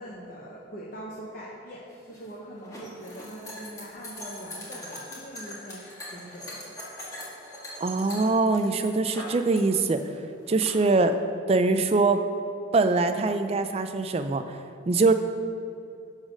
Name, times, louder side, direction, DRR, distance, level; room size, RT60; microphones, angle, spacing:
voice 1, 0.0-6.8, right 1 dB, 45° left, -4 dB, 0.9 m, -42 dB
sound 1, 1.9-9.6 9.9-10.7, left 1 dB, 15° left, 1.5 m, -41 dB
voice 2, 7.8-10.0 10.5-11.2 11.5-12.2 12.7-14.4 14.9-15.1, right 3 dB, 30° right, 8 dB, 0.3 m, -23 dB
9.7 x 4.1 x 6.3 m, 2.6 s
head